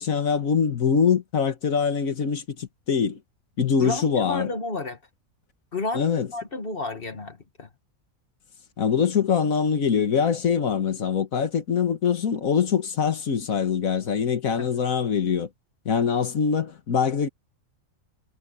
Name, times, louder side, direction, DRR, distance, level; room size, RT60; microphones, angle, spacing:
voice 1, 0.0-3.2 3.6-4.5 5.9-6.3 8.8-15.5 15.9-17.3, left 6 dB, 85° left, 1.9 m, -23 dB
voice 2, 3.8-5.0 5.7-7.7 14.6-14.7, left 3 dB, 45° left, 1.7 m, -31 dB
omnidirectional pair, 1.4 m